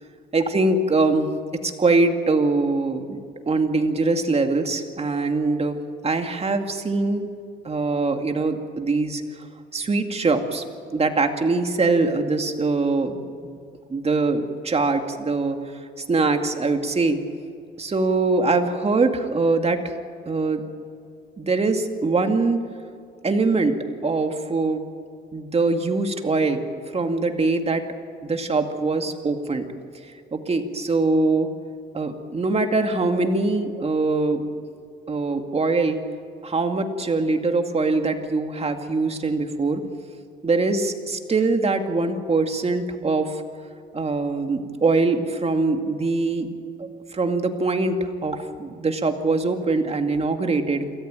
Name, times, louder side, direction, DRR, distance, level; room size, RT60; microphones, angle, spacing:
voice 1, 0.3-1.3 1.6-7.3 7.6-9.2 9.7-13.6 13.9-17.2 17.8-19.9 20.3-20.6 21.4-22.6 23.2-23.8 24.0-24.8 25.3-27.8 28.2-29.6 30.3-31.5 31.9-34.4 35.1-36.0 36.4-39.8 40.4-43.4 43.9-46.5 46.8-50.8, right 3 dB, 30° right, 5 dB, 2.2 m, -23 dB
27.0 x 14.0 x 9.0 m, 2.3 s
cardioid pair, 90°, 20 cm